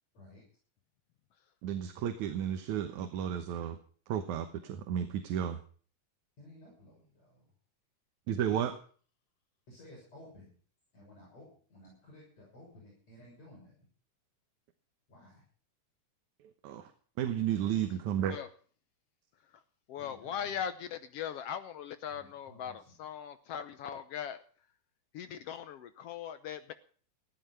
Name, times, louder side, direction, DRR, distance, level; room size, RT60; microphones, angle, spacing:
voice 1, 1.6-3.8 4.1-5.6 8.3-8.8 16.6-16.9 17.2-18.4, right 9 dB, 70° right, 8 dB, 2.4 m, -33 dB
voice 2, 6.4-7.4 9.7-10.5 10.9-13.9 15.1-15.4 19.9-20.6 22.1-23.0, left 1 dB, 55° left, -3 dB, 7.7 m, -55 dB
voice 3, 19.9-24.4 25.1-26.7, left 8 dB, 80° left, 11 dB, 1.4 m, -40 dB
15.0 x 12.5 x 5.5 m, 0.43 s
omnidirectional pair, 3.6 m